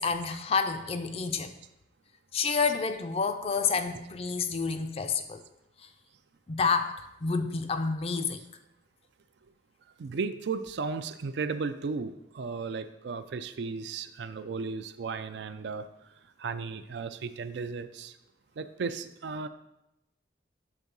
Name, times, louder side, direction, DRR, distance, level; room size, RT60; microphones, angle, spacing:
voice 1, 0.0-1.5 2.3-5.4 6.5-6.9 7.2-8.4, left 5 dB, 35° left, 8 dB, 0.4 m, -29 dB
voice 2, 10.0-15.8 16.4-18.1 18.6-19.5, right 4 dB, 75° right, 10 dB, 0.4 m, -35 dB
5.9 x 3.6 x 5.3 m, 0.87 s
head